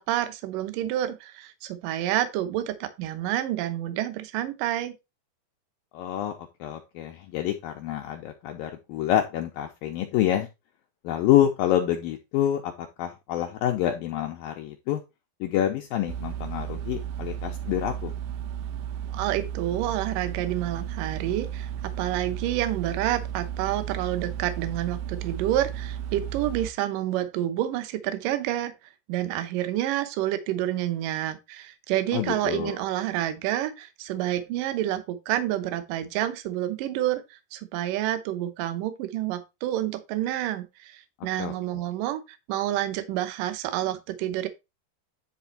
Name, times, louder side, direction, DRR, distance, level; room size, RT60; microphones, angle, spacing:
voice 1, 0.0-5.0 19.1-21.7 22.0-28.7 29.1-42.2 42.5-44.5, right 13 dB, 70° right, 2.1 m, -28 dB
voice 2, 5.9-6.3 6.6-10.5 11.0-15.0 15.4-18.1 32.1-32.8 41.4-41.8, left 11 dB, 85° left, 2.1 m, -27 dB
sound 1, 16.1-26.7, right 10 dB, 90° right, 2.9 m, -34 dB
10.5 x 3.5 x 4.3 m
omnidirectional pair, 4.9 m